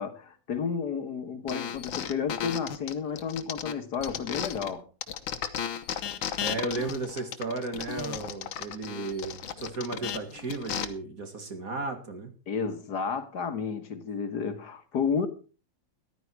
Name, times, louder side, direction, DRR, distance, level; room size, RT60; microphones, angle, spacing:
voice 1, 0.0-4.9 12.5-15.3, left 6 dB, 60° left, 1.7 m, -31 dB
sound 1, 1.5-4.7 5.0-10.8, left 8 dB, 85° left, 1.9 m, -34 dB
voice 2, 6.4-12.3, right 3 dB, 45° right, 2.4 m, -34 dB
14.5 x 11.5 x 4.6 m
omnidirectional pair, 2.1 m